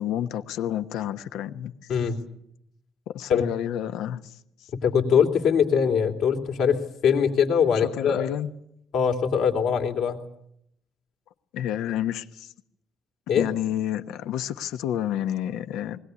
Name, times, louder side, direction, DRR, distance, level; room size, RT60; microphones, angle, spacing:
voice 1, 0.0-1.7 3.1-4.7 7.7-8.5 11.5-12.5 13.3-16.0, left 11 dB, 85° left, 1.2 m, -30 dB
voice 2, 4.7-8.3 8.9-10.2 13.3-13.5, left 7 dB, 70° left, 3.1 m, -22 dB
20.5 x 17.5 x 9.7 m
cardioid pair, 115°, 0 cm